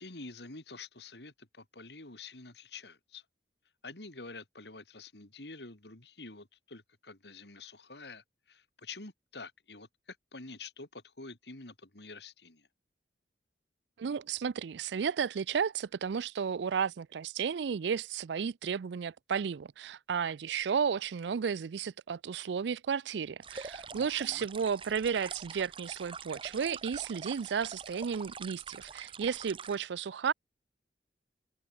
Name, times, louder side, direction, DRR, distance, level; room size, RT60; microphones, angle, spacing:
voice 1, 0.0-3.2 3.8-12.7 23.9-24.5, left 3 dB, 75° left, 3.2 m, -48 dB
voice 2, 14.0-30.3, right 6 dB, 80° right, 0.4 m, -33 dB
sound 1, 23.4-29.8, right 5 dB, 30° right, 0.8 m, -45 dB
head